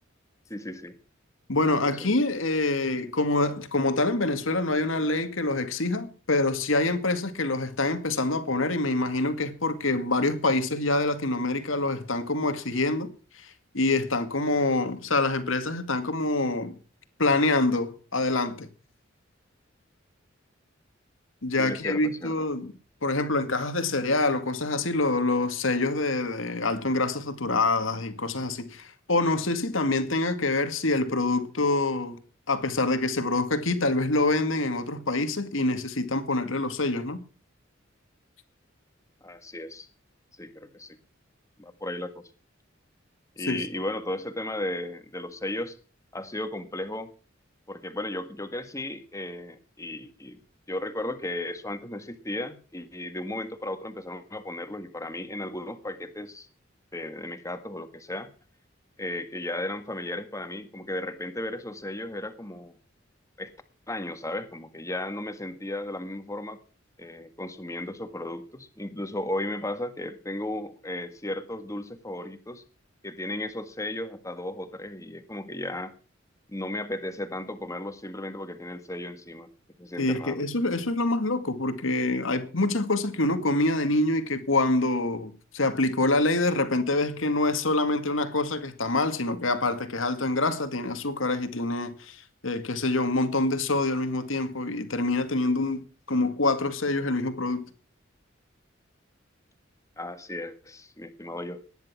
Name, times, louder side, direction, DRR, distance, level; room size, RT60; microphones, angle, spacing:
voice 1, 0.5-0.9 1.7-2.1 21.6-22.3 39.2-39.9 40.4-41.0 41.6-42.2 43.4-45.8 46.1-47.1 47.7-50.4 50.7-56.5 56.9-58.3 59.0-62.8 63.4-63.5 63.9-66.6 67.0-72.6 73.0-75.9 76.5-79.5 79.8-80.4 100.0-101.6, left 1 dB, 15° left, 1.8 m, -35 dB
voice 2, 1.5-13.1 13.3-16.8 17.2-18.7 21.4-22.7 23.0-32.2 32.5-37.2 43.5-43.6 80.0-97.7, left 2 dB, 85° left, 2.1 m, -26 dB
18.5 x 10.5 x 6.0 m
head